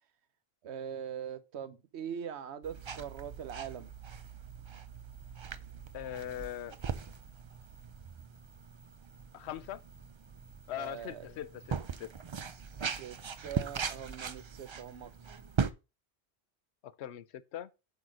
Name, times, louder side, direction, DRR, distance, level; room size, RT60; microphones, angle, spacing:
voice 1, 0.6-3.9 10.7-11.3 12.5-13.2 13.4-15.1, right 8 dB, 90° right, 1.1 m, -42 dB
sound 1, 2.6-15.7, right 6 dB, 45° right, 0.4 m, -40 dB
voice 2, 5.9-6.8 9.3-9.8 10.7-12.1 16.8-17.7, left 11 dB, 85° left, 0.9 m, -41 dB
8.4 x 4.1 x 6.2 m
omnidirectional pair, 1.1 m